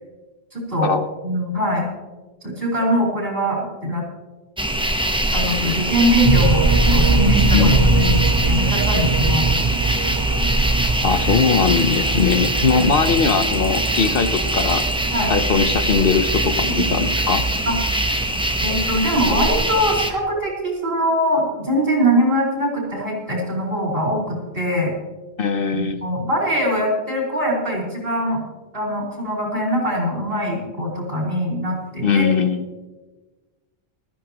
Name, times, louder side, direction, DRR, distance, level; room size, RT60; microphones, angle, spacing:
voice 1, 0.5-1.0 1.2-1.9 2.4-4.0 5.3-7.7 8.0-9.5 12.7-12.9 15.1-15.3 16.7-17.0 17.7-17.8 18.6-24.9 25.7-28.4 28.7-32.3, equal, 60° right, -3 dB, 5.4 m, -22 dB
sound 1, 4.6-20.1, right 1 dB, 5° right, 0.9 m, -22 dB
sound 2, 6.2-18.8, right 4 dB, 35° right, 0.5 m, -23 dB
voice 2, 7.5-8.2 11.0-14.9 15.3-17.4 25.4-26.0 32.0-32.7, left 5 dB, 65° left, 9 dB, 1.1 m, -20 dB
19.5 x 14.5 x 3.0 m, 1.2 s
omnidirectional pair, 1.1 m